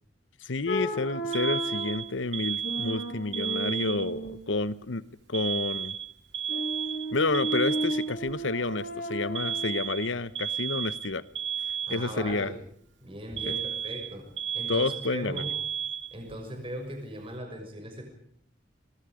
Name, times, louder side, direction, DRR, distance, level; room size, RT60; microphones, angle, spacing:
voice 1, 0.4-5.0 5.3-6.0 7.1-11.2 11.9-12.5 13.4-13.6 14.7-15.4, left 3 dB, 85° left, 16 dB, 1.0 m, -30 dB
sound 1, 0.7-2.1 2.6-4.4 6.5-9.9, right 1 dB, 55° left, 5.4 m, -33 dB
Alarm, 1.3-4.3 5.3-8.3 9.3-12.3 13.4-16.3, right 8 dB, 75° right, 2.0 m, -33 dB
voice 2, 11.9-12.6 13.0-14.3 14.5-15.5 16.1-18.0, right 1 dB, 30° right, 3 dB, 6.2 m, -38 dB
26.5 x 21.5 x 5.1 m, 0.66 s
head